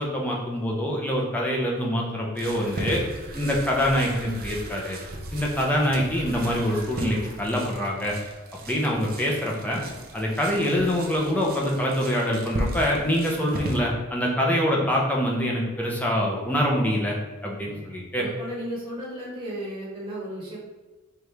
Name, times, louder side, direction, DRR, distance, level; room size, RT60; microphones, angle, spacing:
voice 1, 0.0-3.0 3.3-5.0 5.3-8.2 8.7-9.8 10.1-17.2 17.4-18.2, equal, 5° left, -3 dB, 0.6 m, -25 dB
sound 1, 2.3-13.8, right 1 dB, 40° right, 0.5 m, -36 dB
voice 2, 18.2-20.6, right 1 dB, 20° right, -7 dB, 1.1 m, -35 dB
4.6 x 2.5 x 3.3 m, 1.2 s
head